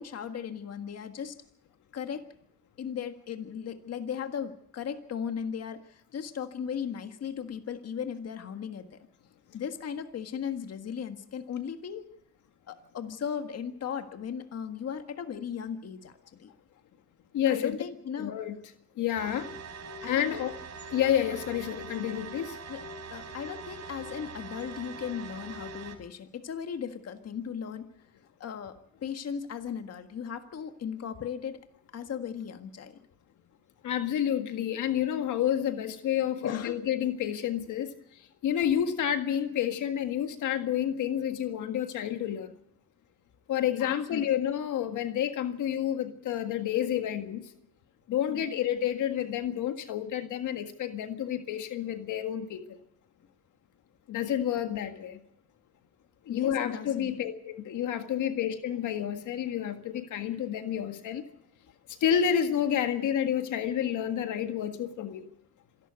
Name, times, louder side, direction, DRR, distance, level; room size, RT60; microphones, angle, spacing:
voice 1, 0.0-1.3 1.9-2.3 2.8-9.0 9.5-12.1 12.7-16.1 16.4-16.5 17.5-18.4 20.0-20.5 22.7-22.8 23.1-27.9 28.4-31.6 31.9-33.0 36.4-36.8 43.8-44.3 48.3-48.5 56.3-57.1, left 7 dB, 55° left, 7 dB, 1.7 m, -37 dB
voice 2, 17.3-17.8 18.2-19.5 20.0-20.5 20.9-22.6 33.8-42.5 43.5-47.5 48.1-52.8 54.1-55.2 56.3-61.2 62.0-65.3, left 10 dB, 80° left, 7 dB, 1.8 m, -29 dB
sound 1, 19.1-25.9, right 3 dB, 60° right, 4.4 m, -42 dB
26.5 x 12.0 x 8.2 m, 0.75 s
cardioid pair, 90°, 30 cm